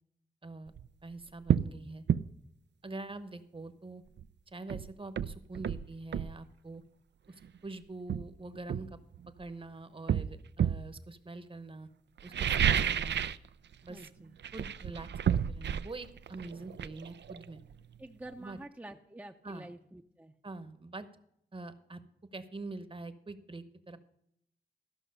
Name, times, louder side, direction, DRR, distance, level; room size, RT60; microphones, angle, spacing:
voice 1, 0.4-0.7 1.0-2.0 2.8-4.0 4.5-6.8 7.3-9.0 9.4-11.9 12.2-13.2 13.8-14.1 14.5-17.6 18.4-18.6 19.4-19.7 20.4-21.1 21.5-22.0 22.3-24.0, right 2 dB, 30° right, 11 dB, 1.0 m, -45 dB
sound 1, 0.7-0.9 1.5-1.7 2.1-2.3 4.2-4.3 4.7-6.4 7.4-7.6 8.1-9.5 10.1-10.9 12.2-13.5 13.7-14.1 14.4-18.0 18.3-18.4, right 8 dB, 80° right, 0.4 m, -31 dB
voice 2, 13.9-14.3 18.0-20.3, right 1 dB, 10° right, 3 dB, 0.6 m, -48 dB
13.5 x 5.9 x 6.7 m, 0.75 s
wide cardioid pair, 90°, 18 cm